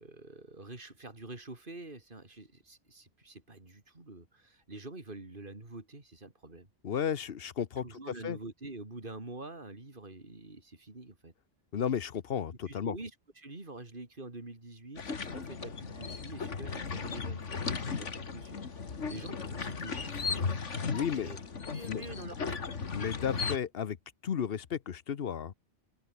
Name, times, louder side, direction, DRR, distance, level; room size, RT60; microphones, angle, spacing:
voice 1, 0.0-6.7 7.8-11.3 12.7-20.6 20.9-21.4 21.7-22.6, right 2 dB, 45° right, 3.8 m, -46 dB
voice 2, 6.8-7.8 8.2-8.4 11.7-12.9 20.9-21.3 21.9-22.0 22.9-24.0 24.2-25.5, left 8 dB, 55° left, 1.1 m, -33 dB
sound 1, 15.0-23.6, left 5 dB, 90° left, 2.2 m, -36 dB
open air
omnidirectional pair, 1.2 m